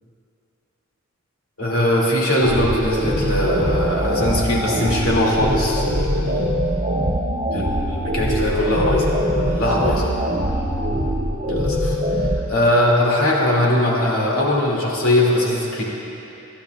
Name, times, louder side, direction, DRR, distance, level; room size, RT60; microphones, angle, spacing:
voice 1, 1.6-6.5 7.5-10.2 11.5-12.0 12.5-15.8, left 1 dB, 85° left, -4 dB, 2.4 m, -20 dB
sound 1, 2.4-12.4, equal, 40° right, 1.2 m, -22 dB
21.5 x 13.0 x 2.4 m, 2.9 s
head